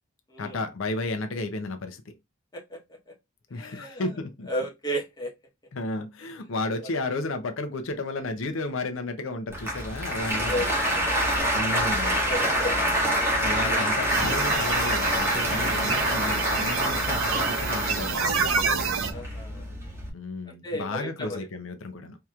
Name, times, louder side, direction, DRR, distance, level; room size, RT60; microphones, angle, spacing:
voice 1, 0.4-2.1 3.5-4.5 5.7-10.7 11.5-12.2 13.4-18.4 20.1-22.2, left 2 dB, 75° left, 0.6 m, -33 dB
voice 2, 3.5-4.0 4.5-5.3 6.8-6.9 10.3-11.2 12.0-12.9 13.6-13.8 14.6-14.7 19.1-19.7 20.5-21.4, equal, 20° left, 1.0 m, -34 dB
Applause, 9.5-20.1, equal, 10° right, 1.3 m, -26 dB
sound 1, 14.1-19.1, right 5 dB, 80° right, 0.7 m, -28 dB
4.5 x 2.9 x 2.4 m
head